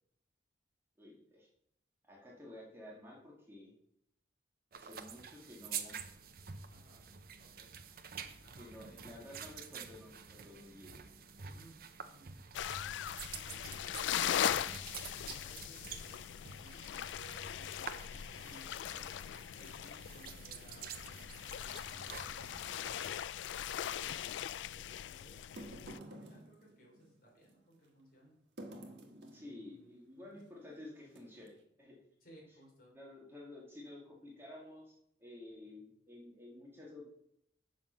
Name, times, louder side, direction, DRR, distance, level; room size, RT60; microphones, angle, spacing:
voice 1, 1.0-1.5 2.1-3.7 4.7-6.0 8.5-10.9 29.3-32.0 32.9-37.1, left 1 dB, 15° right, -3 dB, 1.8 m, -52 dB
sound 1, 4.7-23.2, right 7 dB, 55° right, 0.7 m, -49 dB
voice 2, 6.7-7.1 7.4-7.7 8.4-9.4 11.4-12.3 13.3-14.8 15.2-18.2 18.4-19.1 19.6-23.1 23.8-28.4 29.3-30.5 32.2-32.9, right 1 dB, 50° left, -2 dB, 3.2 m, -61 dB
sound 2, 12.5-26.0, left 10 dB, 80° left, 0.3 m, -40 dB
sound 3, 21.5-22.8 24.5-24.6 25.4-27.5 28.6-29.5 30.4-30.6 31.1-31.6, right 1 dB, 70° right, 1.3 m, -51 dB
7.7 x 6.1 x 5.4 m, 0.75 s
head